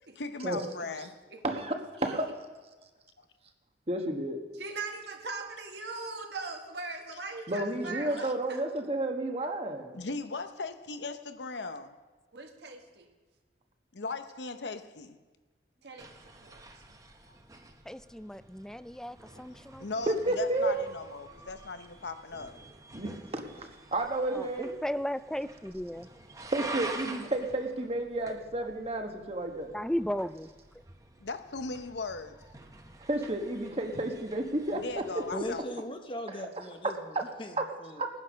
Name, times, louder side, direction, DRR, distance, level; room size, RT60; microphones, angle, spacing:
voice 1, 0.2-1.2 8.2-8.3 9.9-12.0 13.9-15.2 19.4-19.5 19.8-22.6 31.2-32.4 34.7-35.8, left 3 dB, 80° left, 0.9 m, -38 dB
voice 2, 1.4-2.3 3.9-4.4 7.5-10.0 20.1-20.7 22.9-24.7 26.4-29.7 33.1-34.8 35.1-35.4 36.3-36.4 37.1-37.2 37.6-37.7 38.0-38.1, right 1 dB, 35° right, 1.3 m, -31 dB
voice 3, 4.6-8.6 12.3-13.1 15.8-16.1 16.4-16.6, right 3 dB, 70° right, 1.7 m, -40 dB
sound 1, 16.0-35.6, right 2 dB, 20° right, 0.9 m, -48 dB
voice 4, 17.9-19.9 24.3-26.1 29.7-30.5, equal, 5° left, 0.4 m, -35 dB
voice 5, 35.3-37.6 37.8-38.0, left 1 dB, 30° left, 0.9 m, -39 dB
18.5 x 9.8 x 6.4 m
head